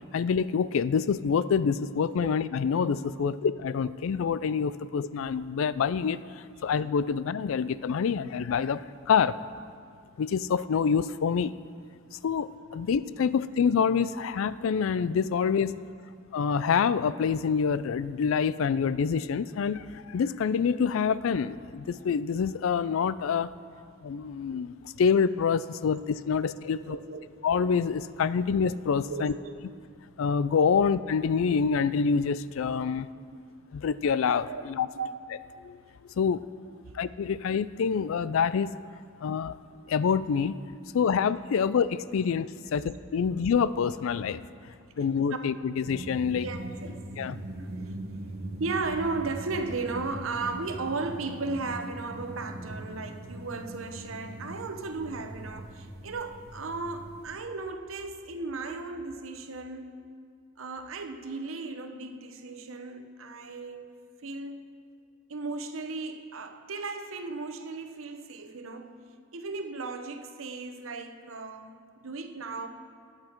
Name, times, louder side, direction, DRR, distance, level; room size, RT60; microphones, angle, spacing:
voice 1, 0.1-6.2 6.6-8.8 9.1-9.4 10.2-11.6 12.1-15.8 16.3-23.5 24.0-27.0 27.4-29.3 30.2-33.1 33.7-34.9 35.6-35.8 36.2-36.4 36.9-38.8 39.2-39.5 39.9-40.6 40.9-44.4 45.0-46.5 47.2-47.4, left 6 dB, 70° left, 0.3 m, -26 dB
voice 2, 26.7-27.3 28.3-28.5 29.1-29.8 32.8-33.5 34.5-34.6 34.9-35.1 36.7-36.9 40.8-40.9 41.6-41.7 42.2-42.3 42.8-42.9 43.2-43.3 44.7-44.8 46.4-47.0 47.6-48.0 48.6-60.1 60.6-63.9 64.2-64.6 65.3-69.0 69.3-72.7, right 3 dB, 75° right, 0.9 m, -36 dB
sound 1, 45.9-57.4, right 1 dB, 50° right, 1.0 m, -41 dB
19.0 x 7.6 x 4.5 m
head